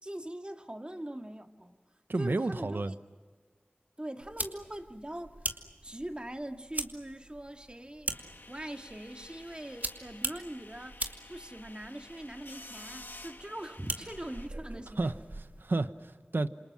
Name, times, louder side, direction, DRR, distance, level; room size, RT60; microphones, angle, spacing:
voice 1, 0.0-1.8 2.2-2.9 4.0-5.5 5.8-8.1 8.5-15.1, right 1 dB, 30° right, 2.1 m, -42 dB
voice 2, 2.1-2.9 15.0-16.5, right 2 dB, 75° right, 1.0 m, -31 dB
sound 1, 4.2-15.6, right 2 dB, 55° right, 2.3 m, -42 dB
sound 2, 8.1-14.5, left 2 dB, 70° left, 1.7 m, -51 dB
28.0 x 27.5 x 6.2 m
wide cardioid pair, 50°, 4 cm